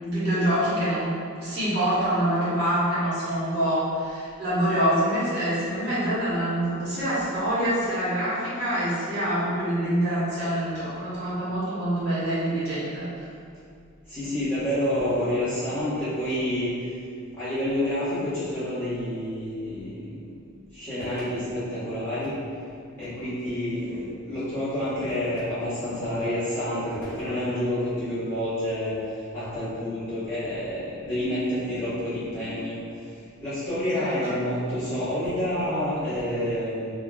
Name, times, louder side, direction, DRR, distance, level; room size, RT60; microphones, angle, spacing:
voice 1, 0.0-1.1 1.4-13.3 33.9-34.1, right 1 dB, 50° right, -11 dB, 1.1 m, -25 dB
voice 2, 14.1-17.0 17.3-20.1 20.7-22.4 23.0-36.9, left 1 dB, 10° left, -15 dB, 1.2 m, -28 dB
3.6 x 2.3 x 2.3 m, 2.3 s
head